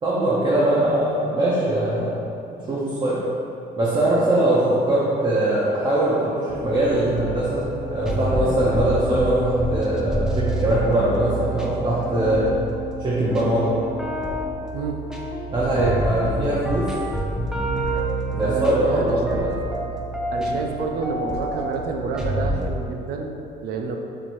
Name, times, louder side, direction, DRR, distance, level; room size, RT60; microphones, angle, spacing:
voice 1, 0.0-2.1 2.7-3.2 3.8-12.4 13.0-13.8 15.5-16.9 18.3-19.5 20.4-20.5, right 1 dB, 30° right, -8 dB, 0.7 m, -21 dB
sound 1, 6.5-22.7, right 1 dB, 5° right, 0.4 m, -28 dB
voice 2, 18.4-19.5 20.3-24.0, right 4 dB, 65° right, 3 dB, 0.4 m, -28 dB
4.4 x 2.9 x 2.6 m, 2.7 s
cardioid pair, 110°, 17 cm